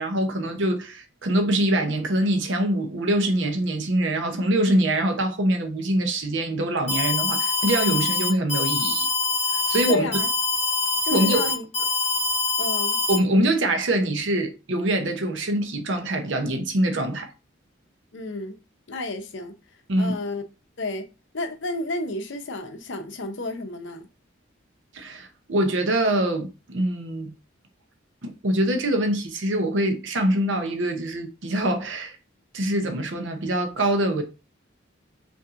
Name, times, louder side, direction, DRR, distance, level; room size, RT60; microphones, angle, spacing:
voice 1, 0.0-9.1 9.5-10.1 11.1-11.5 13.1-17.3 19.9-20.2 24.9-27.3 28.2-32.2 32.5-34.2, right 1 dB, 65° right, 0.7 m, -24 dB
Alarm, 6.9-13.2, left 3 dB, 30° left, 1.3 m, -24 dB
voice 2, 9.9-10.3 11.0-11.7 12.6-13.0 18.1-18.5 18.9-19.6 20.0-20.4 20.8-21.1 21.3-24.1, left 2 dB, 65° left, 0.7 m, -31 dB
5.4 x 2.6 x 2.5 m
head